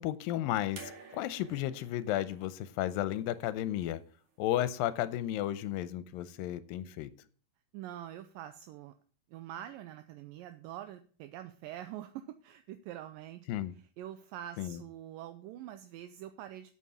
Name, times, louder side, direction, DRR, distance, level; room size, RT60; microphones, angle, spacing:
voice 1, 0.0-4.0 4.4-7.1 13.5-13.7 14.6-14.8, left 13 dB, 85° left, 14 dB, 2.4 m, -33 dB
sound 1, 0.8-3.9 5.1-5.2, right 4 dB, 45° right, 3.0 m, -52 dB
voice 2, 7.7-8.9 9.3-13.6 14.0-16.7, right 12 dB, 80° right, 9 dB, 2.3 m, -45 dB
8.5 x 7.5 x 6.8 m, 0.42 s
omnidirectional pair, 4.1 m